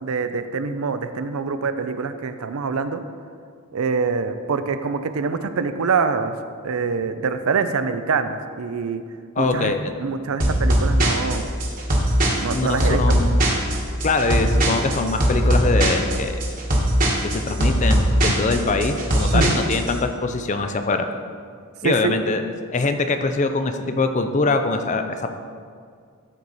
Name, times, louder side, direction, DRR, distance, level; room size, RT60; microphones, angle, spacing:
voice 1, 0.0-3.0 3.7-6.3 6.6-9.0 9.4-11.5 12.4-13.2 19.3-19.6 21.8-22.2, right 5 dB, 70° right, 10 dB, 0.5 m, -25 dB
voice 2, 9.4-9.9 12.5-13.3 14.0-16.4 17.2-21.1 21.8-22.4 22.7-25.3, left 3 dB, 35° left, 7 dB, 0.5 m, -23 dB
sound 1, 10.4-19.9, right 1 dB, 40° right, 1.3 m, -20 dB
13.5 x 4.6 x 4.1 m, 2.1 s
head